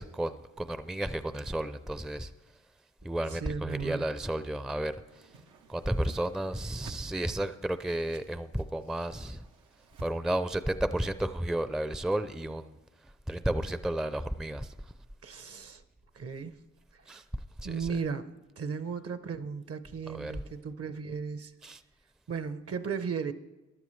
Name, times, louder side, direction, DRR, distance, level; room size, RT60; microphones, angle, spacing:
voice 1, 0.0-2.3 3.0-5.3 5.7-9.5 10.0-12.8 13.0-14.9 17.1-17.2 17.6-18.0 20.1-20.5 21.6-21.8, right 1 dB, ahead, 0.4 m, -33 dB
voice 2, 3.3-4.0 15.2-15.8 16.1-16.5 16.9-17.0 17.6-18.3 18.6-21.5 22.3-23.3, right 6 dB, 50° right, 0.8 m, -35 dB
Whoosh swoosh swish, 5.1-10.1, right 4 dB, 85° right, 0.9 m, -54 dB
15.0 x 11.5 x 3.2 m
cardioid pair, 65°, 31 cm